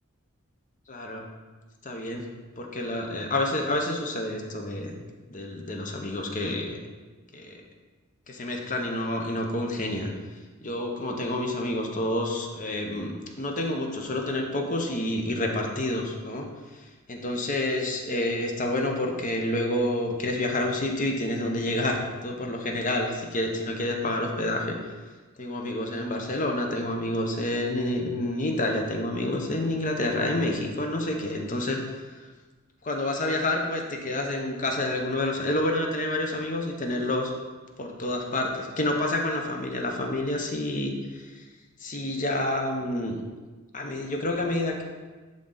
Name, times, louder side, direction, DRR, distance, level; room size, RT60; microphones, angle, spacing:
voice 1, 0.9-1.2 1.8-2.2 2.6-5.0 5.3-6.8 7.3-7.6 8.3-10.1 10.6-16.5 16.7-24.9 25.4-32.2 32.8-37.3 37.8-41.4 41.8-43.2 43.7-44.8, left 1 dB, 35° left, 2 dB, 0.9 m, -28 dB
11.5 x 3.8 x 3.9 m, 1.3 s
head